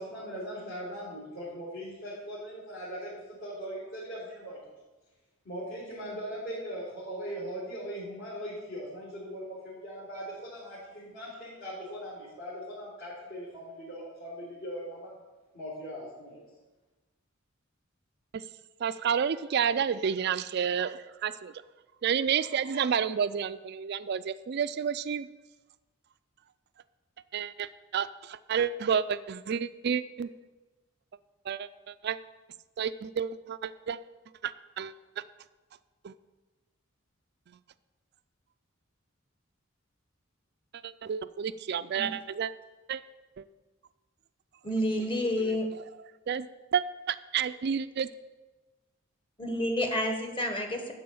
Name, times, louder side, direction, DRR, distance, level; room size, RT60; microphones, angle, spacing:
voice 1, 0.0-4.6 5.4-15.1 15.5-16.4, equal, 55° left, -10 dB, 4.0 m, -40 dB
voice 2, 18.8-21.6 22.0-25.3 27.3-30.3 31.5-32.2 32.8-34.0 34.4-35.2 36.0-36.1 41.0-42.5 42.9-43.0 43.4-43.5 46.3-48.1, right 7 dB, 50° right, 13 dB, 0.4 m, -30 dB
voice 3, 44.6-45.7 49.4-50.9, left 1 dB, 25° left, 3 dB, 1.5 m, -29 dB
12.5 x 4.7 x 7.8 m, 1.2 s
head